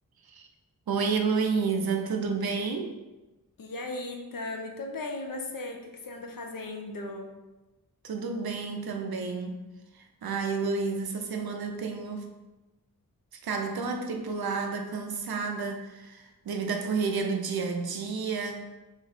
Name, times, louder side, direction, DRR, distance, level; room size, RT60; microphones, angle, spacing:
voice 1, 0.9-3.0 8.0-9.6 9.9-12.3 13.3-18.7, right 5 dB, 90° right, 4 dB, 0.6 m, -30 dB
voice 2, 3.6-7.4, left 2 dB, 65° left, 3 dB, 0.7 m, -37 dB
3.6 x 3.1 x 4.0 m, 1.1 s
wide cardioid pair, 105°, 36 cm